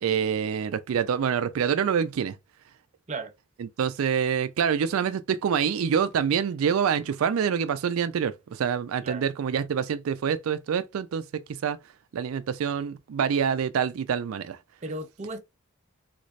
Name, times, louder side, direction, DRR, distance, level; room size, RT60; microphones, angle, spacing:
voice 1, 0.0-2.4 3.6-11.8 12.1-14.6, right 7 dB, 90° right, 0.4 m, -26 dB
voice 2, 14.8-15.4, right 2 dB, 35° right, 0.5 m, -35 dB
3.2 x 3.2 x 2.5 m
head